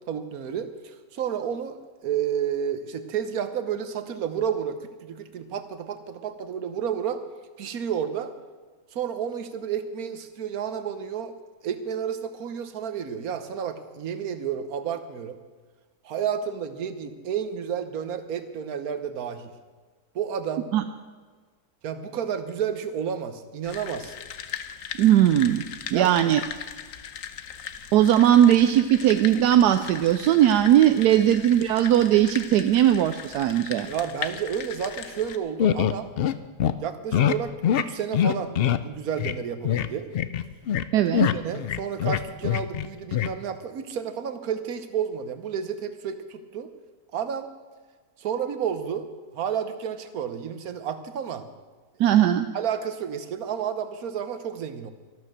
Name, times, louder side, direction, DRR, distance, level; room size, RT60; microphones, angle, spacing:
voice 1, 0.1-7.2 7.6-8.3 8.9-11.3 11.6-15.4 16.0-19.5 20.1-20.7 21.8-24.1 25.9-26.3 31.1-31.2 33.9-36.1 36.8-40.1 41.3-46.7 47.1-47.5 48.2-49.1 49.3-51.5 52.5-54.9, right 8 dB, 65° right, 10 dB, 1.5 m, -31 dB
sound 1, 23.6-35.4, left 8 dB, 60° left, 1.1 m, -39 dB
voice 2, 25.0-25.6 25.9-26.4 27.9-33.9 40.9-41.3 52.0-52.5, right 11 dB, 80° right, 9 dB, 1.1 m, -19 dB
sound 2, 35.6-36.3 36.6-36.7 37.1-37.4 37.6-37.8 38.1-38.8 39.2-39.3 39.6-39.9 40.1-40.9 41.1-42.9 43.1-43.3, left 9 dB, 85° left, 0.5 m, -23 dB
13.0 x 12.5 x 6.4 m, 1.4 s
omnidirectional pair, 1.7 m